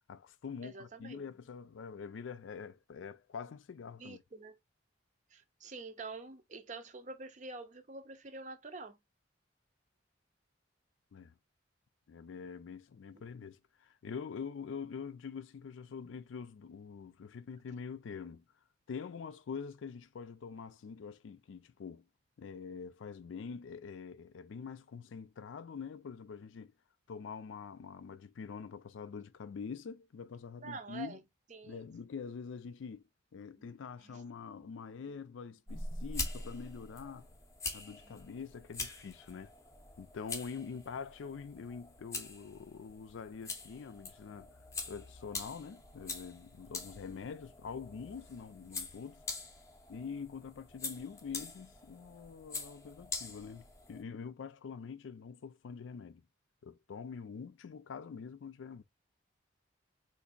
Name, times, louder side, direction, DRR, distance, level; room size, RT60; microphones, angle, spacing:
voice 1, 0.1-4.2 11.1-11.3 12.1-18.4 18.9-22.1 22.4-26.7 27.1-31.2 31.6-33.0 33.3-37.3 37.7-39.5 40.0-44.5 44.9-49.2 49.9-56.3 56.6-58.8, left 6 dB, 80° left, 0.4 m, -45 dB
voice 2, 0.6-1.2 4.0-4.5 5.3-9.0 30.6-31.2 31.5-31.9 33.5-33.7 34.0-34.2 34.6-34.7 38.0-38.2, right 3 dB, 40° right, 0.5 m, -47 dB
sound 1, 35.7-54.0, left 3 dB, 15° left, 0.6 m, -44 dB
3.9 x 2.6 x 2.4 m
head